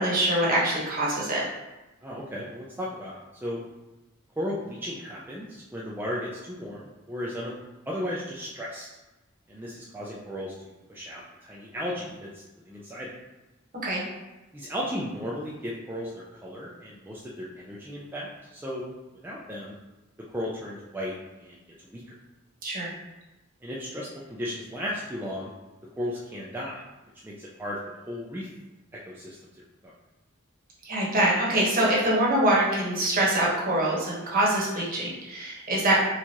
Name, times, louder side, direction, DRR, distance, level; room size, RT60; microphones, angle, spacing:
voice 1, 0.0-1.4 13.8-14.0 22.6-22.9 30.8-36.0, right 1 dB, 45° right, -5 dB, 1.0 m, -24 dB
voice 2, 2.0-3.1 3.4-3.6 4.4-7.5 7.9-8.9 9.5-13.1 14.5-18.8 19.2-19.7 20.3-22.2 23.6-25.5 25.9-26.8 27.2-27.8 28.1-28.5 29.1-29.4 29.8-29.9, equal, 10° right, -6 dB, 0.4 m, -35 dB
4.4 x 2.4 x 2.8 m, 1.1 s
head